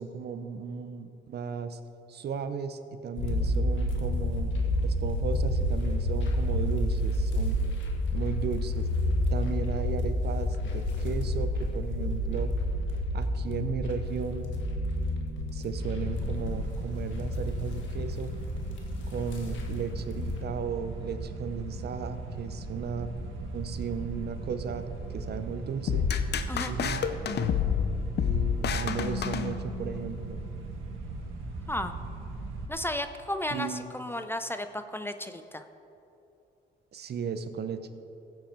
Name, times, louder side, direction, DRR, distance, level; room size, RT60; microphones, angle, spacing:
voice 1, 0.0-1.8 2.1-4.5 4.8-7.6 8.1-8.9 9.3-12.5 13.1-14.5 15.5-18.3 19.1-23.1 23.5-26.1 26.7-27.0 28.2-30.4 33.5-33.9 36.9-37.9, right 6 dB, 55° right, 10 dB, 0.8 m, -35 dB
sound 1, 3.2-20.4, left 1 dB, 75° left, 1.6 m, -30 dB
sound 2, 15.8-32.7, right 3 dB, 80° right, 1.6 m, -38 dB
sound 3, 25.9-30.0, left 7 dB, 60° left, 0.7 m, -29 dB
voice 2, 32.7-35.6, left 1 dB, 10° left, 9 dB, 0.5 m, -34 dB
15.0 x 7.7 x 4.5 m, 2.8 s
cardioid pair, 90°, 20 cm